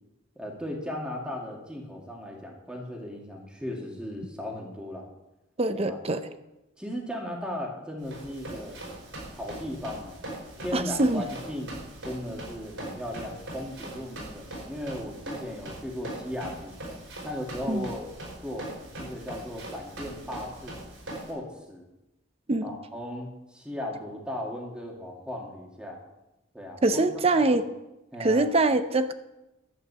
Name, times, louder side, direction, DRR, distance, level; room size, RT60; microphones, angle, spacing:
voice 1, 0.4-5.1 5.8-6.0 6.8-8.8 9.3-10.2 10.6-11.7 12.0-16.8 17.2-18.1 18.4-18.7 19.0-20.8 21.3-21.8 22.6-26.0 26.5-27.0 27.4-27.6 28.1-28.5, left 1 dB, 5° right, -1 dB, 2.2 m, -37 dB
voice 2, 5.6-6.2 10.7-11.2 17.7-17.9 22.5-22.7 26.8-27.6 28.2-29.1, right 2 dB, 30° right, 10 dB, 0.6 m, -23 dB
Run, 8.0-21.3, right 1 dB, 70° right, 5.0 m, -41 dB
11.0 x 8.9 x 6.9 m, 0.95 s
head